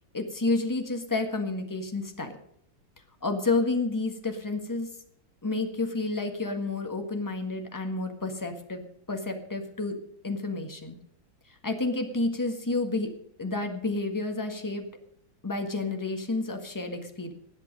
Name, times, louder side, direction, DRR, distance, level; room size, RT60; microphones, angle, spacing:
voice 1, 0.1-2.3 3.2-4.9 5.4-8.8 9.1-10.0 10.2-10.9 11.6-13.1 13.4-14.8 15.4-17.3, left 3 dB, 10° left, 5 dB, 1.4 m, -30 dB
19.0 x 8.2 x 5.3 m, 0.73 s
omnidirectional pair, 2.2 m